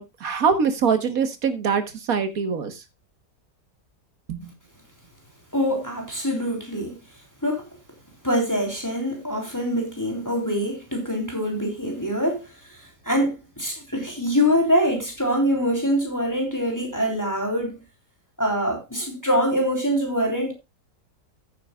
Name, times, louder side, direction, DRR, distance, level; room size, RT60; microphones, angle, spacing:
voice 1, 0.0-1.8 2.1-2.8 4.3-4.5, right 6 dB, 55° right, 1.8 m, -23 dB
voice 2, 5.5-7.0 7.4-7.7 8.2-17.8 18.4-20.5, equal, 10° left, 3.3 m, -24 dB
15.0 x 8.9 x 2.4 m
omnidirectional pair, 1.8 m